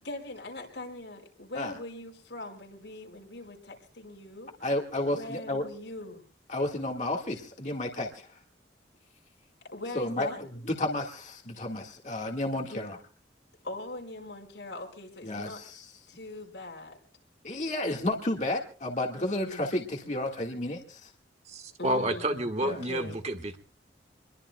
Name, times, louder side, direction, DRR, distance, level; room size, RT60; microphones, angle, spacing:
voice 1, 0.0-4.5 5.1-6.2 9.7-10.4 12.6-12.9 13.6-15.6 16.1-17.0 19.2-19.7 21.8-22.4 22.7-23.2, left 2 dB, 85° left, 1 dB, 4.8 m, -41 dB
voice 2, 4.6-5.7 6.5-8.4 10.0-13.0 15.2-15.9 17.4-21.1 22.6-22.8, left 1 dB, 40° left, 1 dB, 1.7 m, -32 dB
voice 3, 21.5-23.6, right 1 dB, 35° right, 6 dB, 1.5 m, -30 dB
26.5 x 22.0 x 2.3 m, 0.38 s
head